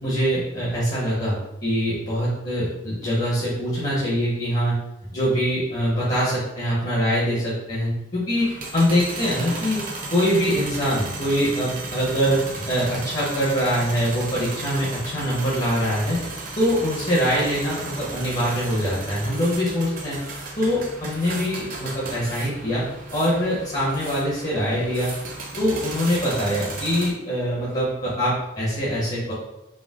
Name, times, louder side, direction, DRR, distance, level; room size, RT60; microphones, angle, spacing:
voice 1, 0.0-4.8 5.1-9.8 10.1-12.4 12.7-16.2 16.5-20.2 20.6-22.8 23.1-25.1 25.6-29.3, equal, 40° left, -8 dB, 1.3 m, -23 dB
sound 1, 8.4-27.1, right 3 dB, 45° right, 0.8 m, -35 dB
4.9 x 2.2 x 3.7 m, 0.88 s
head